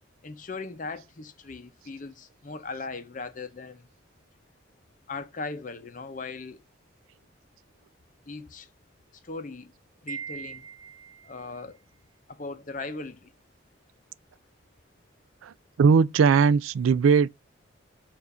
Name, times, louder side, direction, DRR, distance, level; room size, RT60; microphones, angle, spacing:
voice 1, 0.2-3.9 5.1-6.6 8.3-8.7 9.2-9.7 10.0-10.7 11.2-11.8 12.3-13.3, left 3 dB, 40° left, 0.7 m, -38 dB
Wind chime, 10.1-11.5, right 7 dB, 15° right, 0.8 m, -40 dB
voice 2, 15.8-17.3, right 5 dB, 85° right, 0.3 m, -19 dB
7.1 x 2.6 x 5.4 m
head